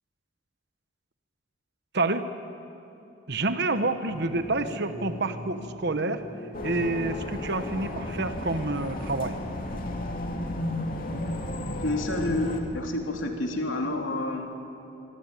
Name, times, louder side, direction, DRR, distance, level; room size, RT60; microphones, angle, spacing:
voice 1, 1.9-2.3 3.3-6.2 6.6-9.4, right 2 dB, 60° right, 9 dB, 1.2 m, -28 dB
sound 1, 4.1-8.7, equal, 35° right, 7.5 m, -41 dB
sound 2, 6.5-12.6, left 1 dB, 50° left, 2.6 m, -33 dB
voice 2, 11.7-14.5, left 2 dB, 85° left, 1 dB, 3.7 m, -29 dB
25.5 x 23.0 x 9.2 m, 2.9 s
head